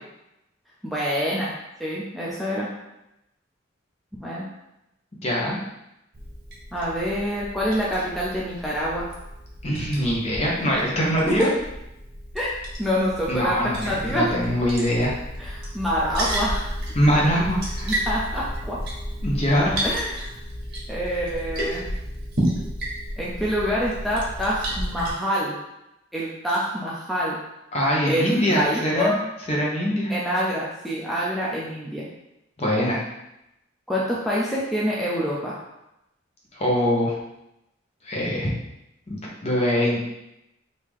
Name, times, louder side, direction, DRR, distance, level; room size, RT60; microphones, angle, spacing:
voice 1, 0.8-1.5 1.8-2.7 4.2-4.5 6.7-9.1 11.4-11.5 12.3-12.5 12.8-14.3 15.4-16.7 17.8-18.8 19.8-20.4 20.9-21.8 23.2-25.6 26.1-27.4 28.1-29.2 30.1-32.0 33.9-35.6, equal, ahead, -7 dB, 0.5 m, -26 dB
voice 2, 5.2-5.6 9.6-11.5 13.3-15.2 16.9-18.0 19.2-19.8 27.7-29.2 29.5-30.1 32.6-33.0 36.5-37.2 38.0-38.5 39.1-40.0, equal, 35° left, -3 dB, 1.0 m, -23 dB
Liquid, 6.1-25.1, equal, 55° right, 1.4 m, -32 dB
3.6 x 2.8 x 4.7 m, 0.88 s
head